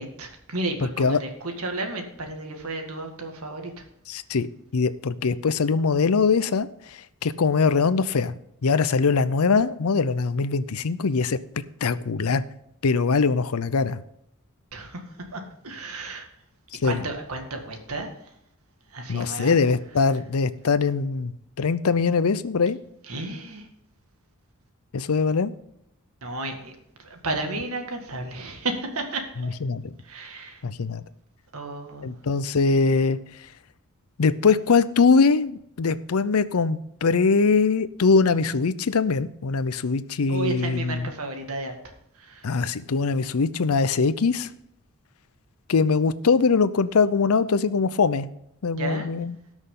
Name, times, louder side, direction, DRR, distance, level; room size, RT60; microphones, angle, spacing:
voice 1, 0.0-3.9 14.7-16.3 16.8-18.4 18.9-19.6 23.0-23.7 26.2-29.6 30.0-30.6 31.5-32.1 40.3-41.7 42.1-42.5 48.8-49.1, right 2 dB, 80° right, 4 dB, 1.9 m, -33 dB
voice 2, 4.1-4.5 4.7-8.3 8.6-11.4 11.8-12.4 12.8-14.0 16.8-17.0 19.1-22.8 24.9-25.5 29.6-29.9 30.6-31.0 32.0-33.2 34.2-41.1 42.4-44.5 45.7-48.3 48.6-49.4, left 4 dB, 80° left, 15 dB, 0.6 m, -22 dB
18.5 x 6.2 x 3.8 m, 0.76 s
head